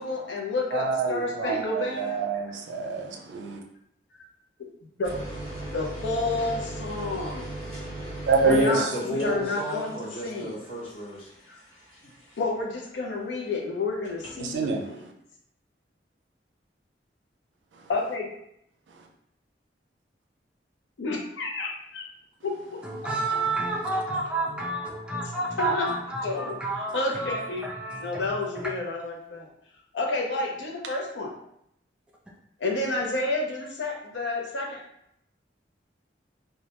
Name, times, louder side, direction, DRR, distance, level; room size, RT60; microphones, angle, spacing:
voice 1, 0.0-2.2 4.6-4.7 5.0-5.1 5.7-7.5 8.4-9.9 10.2-10.5 11.5-11.6 12.4-15.0 17.9-18.3 21.0-22.0 22.4-22.8 25.6-25.9 26.2-27.7 28.0-29.5 29.9-31.3 32.6-34.8, left 2 dB, 85° left, 0 dB, 0.5 m, -30 dB
voice 2, 0.7-3.6 8.3-8.9 14.4-14.8, right 4 dB, 85° right, 2 dB, 0.4 m, -26 dB
sound 1, 5.0-12.7 14.0-14.4, right 1 dB, 70° left, 1.0 m, -39 dB
voice 3, 8.5-11.3, equal, 30° left, -6 dB, 0.7 m, -33 dB
voice 4, 22.8-28.7, right 2 dB, 5° right, -3 dB, 0.3 m, -30 dB
2.2 x 2.0 x 2.8 m, 0.74 s
head